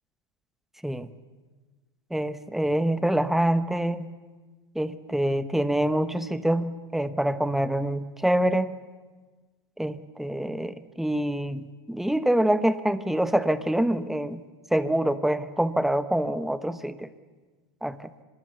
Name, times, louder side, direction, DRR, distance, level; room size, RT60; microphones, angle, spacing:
voice 1, 2.1-4.1 4.7-8.7 9.8-14.4 14.7-17.1 17.8-18.1, right 1 dB, ahead, 12 dB, 1.0 m, -26 dB
24.5 x 20.5 x 7.1 m, 1.3 s
hypercardioid pair, 105°, 13 cm